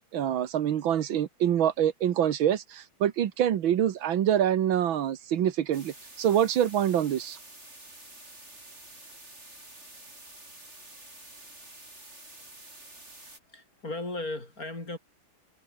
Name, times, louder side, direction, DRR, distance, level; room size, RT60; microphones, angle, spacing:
voice 1, 0.0-7.4, right 10 dB, 80° right, 2.0 m, -26 dB
sound 1, 5.7-13.4, right 2 dB, 35° right, 7.2 m, -49 dB
voice 2, 13.5-15.0, left 2 dB, 45° left, 6.3 m, -36 dB
omnidirectional pair, 2.1 m